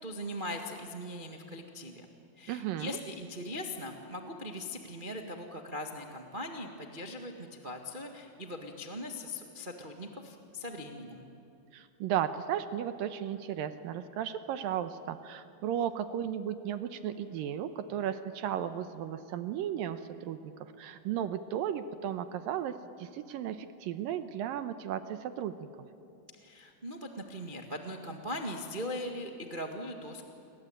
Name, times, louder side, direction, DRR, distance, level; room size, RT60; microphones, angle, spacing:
voice 1, 0.0-2.1 2.4-11.2 26.4-30.2, left 1 dB, 60° right, 3 dB, 0.5 m, -40 dB
voice 2, 2.5-3.0 11.7-25.7, right 10 dB, 75° right, 10 dB, 2.4 m, -35 dB
29.0 x 23.0 x 9.0 m, 2.9 s
omnidirectional pair, 4.5 m